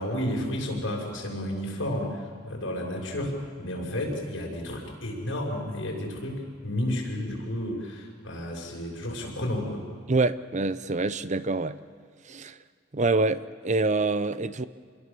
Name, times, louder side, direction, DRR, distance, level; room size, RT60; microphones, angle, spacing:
voice 1, 0.0-9.8, left 1 dB, 75° left, 0 dB, 6.2 m, -32 dB
voice 2, 10.1-11.8 12.3-12.6 12.9-14.7, right 3 dB, 35° right, 14 dB, 0.7 m, -26 dB
28.0 x 22.0 x 6.9 m, 2.1 s
head